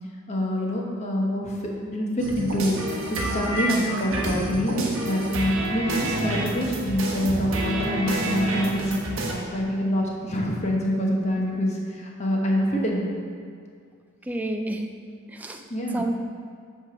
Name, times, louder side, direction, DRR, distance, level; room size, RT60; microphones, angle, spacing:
voice 1, 0.3-13.1 15.7-16.1, equal, 30° left, -2 dB, 1.0 m, -26 dB
sound 1, 2.2-9.3, right 1 dB, 70° right, 1.1 m, -28 dB
voice 2, 14.3-14.9 15.3-15.6 15.9-16.2, right 1 dB, 5° right, 4 dB, 0.3 m, -29 dB
8.8 x 3.5 x 5.8 m, 2.3 s
head